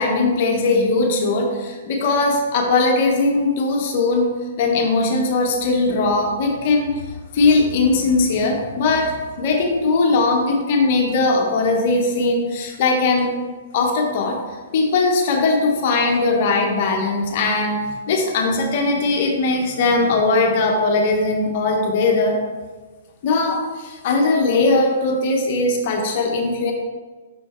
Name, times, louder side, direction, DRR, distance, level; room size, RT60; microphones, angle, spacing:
voice 1, 0.0-4.3 4.6-6.9 7.3-13.3 13.7-14.4 14.7-17.8 18.1-22.4 23.2-26.7, left 3 dB, 50° left, 1 dB, 1.1 m, -19 dB
6.2 x 4.3 x 4.4 m, 1.3 s
hypercardioid pair, 135°, 0 cm